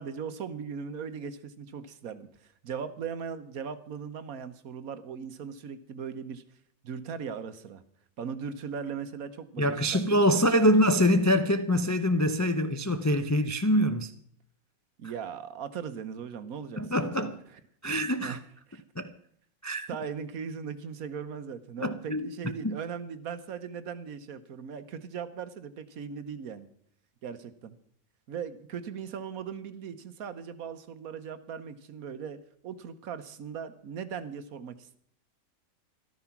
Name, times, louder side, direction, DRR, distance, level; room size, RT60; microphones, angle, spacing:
voice 1, 0.0-6.4 6.8-7.8 8.2-9.7 9.9-10.7 15.0-17.3 18.2-18.4 18.7-18.8 19.9-26.7 27.2-27.7 28.3-35.0, right 6 dB, 70° right, 1.4 m, -39 dB
voice 2, 9.6-14.1 16.8-17.3 17.8-18.4 19.0-19.1 19.6-19.9 21.8-22.2 22.6-22.8, equal, 25° left, 0.3 m, -24 dB
13.5 x 13.0 x 5.9 m
omnidirectional pair, 1.6 m